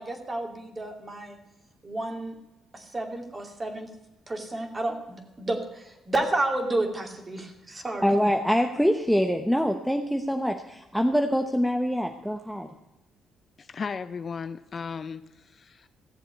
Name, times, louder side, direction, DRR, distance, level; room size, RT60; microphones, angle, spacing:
voice 1, 0.0-1.4 1.8-2.4 2.7-3.9 4.3-8.1, right 2 dB, 25° right, 4 dB, 2.4 m, -31 dB
voice 2, 8.0-12.7, equal, ahead, 4 dB, 1.0 m, -24 dB
voice 3, 13.6-15.9, left 5 dB, 45° left, 11 dB, 0.6 m, -36 dB
15.0 x 7.2 x 8.3 m, 0.97 s
cardioid pair, 90°, 0 cm